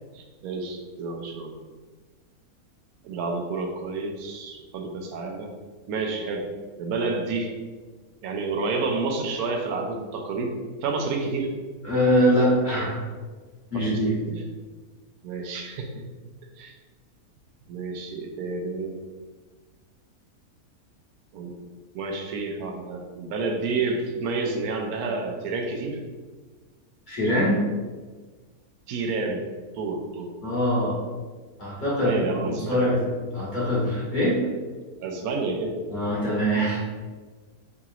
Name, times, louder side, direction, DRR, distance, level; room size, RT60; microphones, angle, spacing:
voice 1, 0.1-1.5 3.0-5.5 5.9-6.5 6.8-7.5 8.2-10.5 10.8-11.5 13.7-14.1 15.2-15.9 16.6-16.8 17.7-19.0 21.3-21.5 21.9-26.0 28.9-29.4 29.7-30.3 32.0-32.9 35.0-35.8, right 3 dB, 85° right, 2 dB, 1.1 m, -29 dB
voice 2, 11.8-13.0 13.7-14.2 27.1-27.6 30.4-31.0 31.6-34.4 35.9-36.8, equal, 35° left, -8 dB, 1.3 m, -23 dB
4.9 x 2.8 x 2.4 m, 1.4 s
omnidirectional pair, 1.5 m